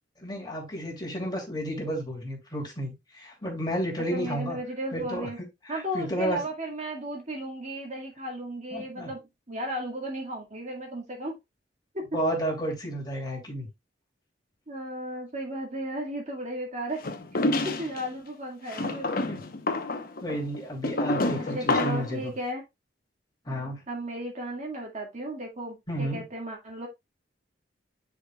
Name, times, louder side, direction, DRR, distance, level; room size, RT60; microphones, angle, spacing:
voice 1, 0.2-4.6 4.9-5.3 5.6-6.4 8.7-9.1 12.1-13.7 19.3-19.4 20.2-22.3 23.4-23.8 25.9-26.2, equal, 25° left, 2.9 m, -32 dB
voice 2, 4.1-5.4 5.7-9.2 9.5-11.4 11.9-12.2 14.7-17.0 17.3-17.4 17.6-19.1 21.3-22.6 23.9-26.9, right 1 dB, 40° right, 2.1 m, -35 dB
sound 1, 17.0-18.0 18.7-22.1, left 2 dB, 55° left, 1.0 m, -28 dB
9.9 x 5.1 x 2.4 m
head